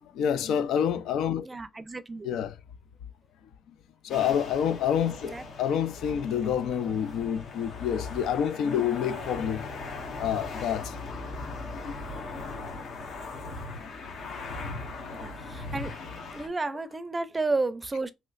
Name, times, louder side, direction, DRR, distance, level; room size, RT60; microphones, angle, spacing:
voice 1, 0.0-1.5 2.2-2.6 4.0-9.7 10.1-11.0 11.8-12.0 13.8-13.9 14.2-14.3, left 8 dB, 85° left, 0.4 m, -28 dB
voice 2, 1.4-2.3 5.3-5.4 15.2-16.0 16.3-18.1, right 3 dB, 25° right, 0.4 m, -31 dB
sound 1, 4.1-16.5, left 3 dB, 70° left, 1.1 m, -39 dB
3.1 x 3.0 x 2.4 m
cardioid pair, 90°, 0 cm